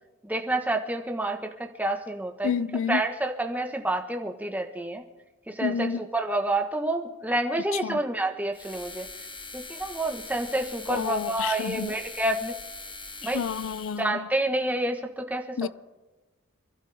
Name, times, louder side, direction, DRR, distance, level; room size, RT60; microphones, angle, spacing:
voice 1, 0.2-2.5 2.9-5.0 5.5-9.1 9.5-12.5 13.2-13.4 14.0-15.7, right 1 dB, 5° right, 1.2 m, -28 dB
voice 2, 2.4-3.0 5.6-6.0 7.8-8.0 10.9-11.9 13.2-14.2 15.6-15.7, left 7 dB, 60° left, 0.4 m, -29 dB
sound 1, 8.5-14.0, left 3 dB, 20° left, 1.3 m, -42 dB
27.0 x 12.0 x 3.4 m
head